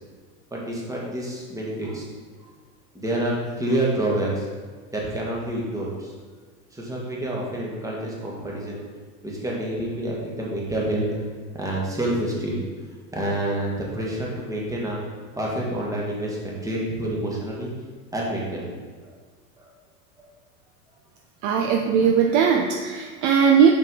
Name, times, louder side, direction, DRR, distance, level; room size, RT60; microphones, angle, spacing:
voice 1, 0.5-2.1 2.9-4.5 4.9-6.1 6.7-8.8 9.2-11.2 11.5-12.6 13.1-15.0 15.4-17.7 18.1-18.7 19.0-19.1 19.6-19.7, right 1 dB, 5° right, -4 dB, 1.6 m, -28 dB
voice 2, 21.4-23.7, right 7 dB, 40° right, 2 dB, 0.6 m, -19 dB
5.8 x 5.2 x 3.7 m, 1.5 s
hypercardioid pair, 105°, 46 cm